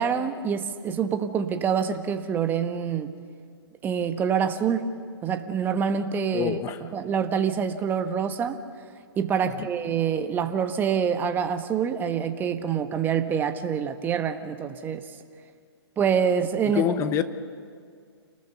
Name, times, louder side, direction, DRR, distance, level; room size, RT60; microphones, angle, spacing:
voice 1, 0.0-3.1 3.8-4.9 5.2-6.5 6.9-8.6 9.2-15.0 16.0-16.9, right 7 dB, 15° right, 8 dB, 1.1 m, -26 dB
voice 2, 6.3-6.8 9.4-9.7 16.7-17.2, left 10 dB, 20° left, 11 dB, 0.9 m, -26 dB
28.0 x 19.5 x 6.9 m, 2.1 s
hypercardioid pair, 140°, 14 cm